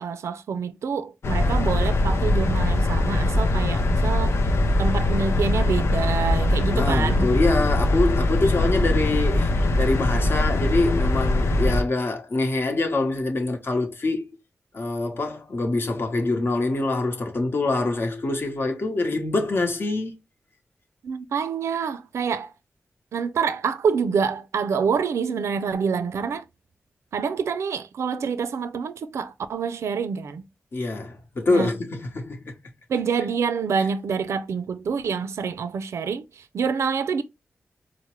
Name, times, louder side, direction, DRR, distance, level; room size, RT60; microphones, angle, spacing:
voice 1, 0.0-4.4 4.8-7.3 21.0-22.5 23.1-26.4 27.1-30.4 31.5-31.7 32.9-37.2, right 6 dB, 90° right, 0.3 m, -27 dB
sound 1, 1.2-11.8, left 1 dB, 70° left, 0.5 m, -22 dB
voice 2, 6.7-14.3 14.7-20.1 30.7-32.5, left 2 dB, 55° left, 0.9 m, -25 dB
4.4 x 2.0 x 3.0 m
cardioid pair, 75°, 5 cm